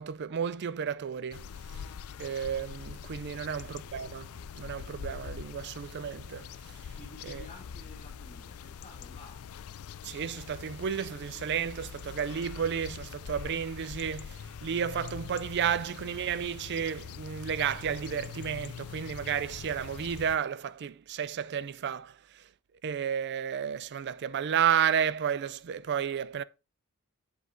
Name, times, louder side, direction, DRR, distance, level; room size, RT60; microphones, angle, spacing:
voice 1, 0.0-1.5 2.2-4.3 4.5-6.5 7.2-7.4 10.0-22.4 22.8-26.4, right 8 dB, 50° right, 0.4 m, -32 dB
sound 1, 1.3-20.4, left 7 dB, 75° left, 0.4 m, -44 dB
voice 2, 6.9-9.5, left 1 dB, 30° left, 2.0 m, -52 dB
8.1 x 7.7 x 2.6 m
head